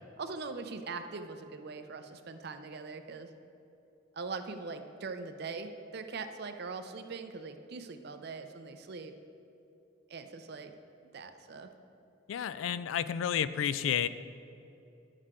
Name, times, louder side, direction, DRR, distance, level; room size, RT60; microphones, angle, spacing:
voice 1, 0.2-3.3 4.1-9.1 10.1-10.7 11.1-11.7, right 4 dB, 55° right, 8 dB, 0.5 m, -41 dB
voice 2, 12.3-14.1, left 9 dB, 85° left, 15 dB, 0.3 m, -31 dB
10.0 x 6.5 x 3.7 m, 2.8 s
head